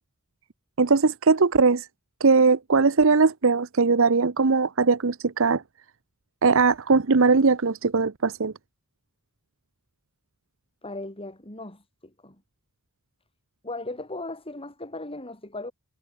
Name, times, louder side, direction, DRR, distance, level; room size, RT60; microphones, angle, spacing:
voice 1, 0.8-1.9 2.2-5.6 6.4-8.5, right 4 dB, 65° right, 0.8 m, -20 dB
voice 2, 10.8-12.4 13.6-15.7, left 2 dB, 25° left, 6.8 m, -37 dB
head